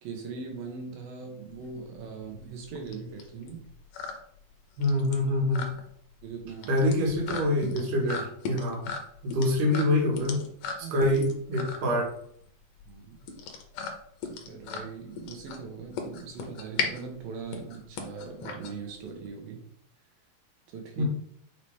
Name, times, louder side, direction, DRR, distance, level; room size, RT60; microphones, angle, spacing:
voice 1, 0.0-3.7 6.2-6.7 10.8-11.1 12.9-13.3 14.2-19.6 20.7-21.0, right 5 dB, 85° right, 2 dB, 3.3 m, -40 dB
sound 1, 1.5-19.3, left 5 dB, 75° left, 2.6 m, -38 dB
voice 2, 4.8-5.7 6.7-8.9 9.2-10.4 10.8-12.1 21.0-21.1, left 1 dB, 70° right, -1 dB, 3.4 m, -25 dB
8.3 x 5.1 x 3.7 m, 0.65 s
omnidirectional pair, 4.0 m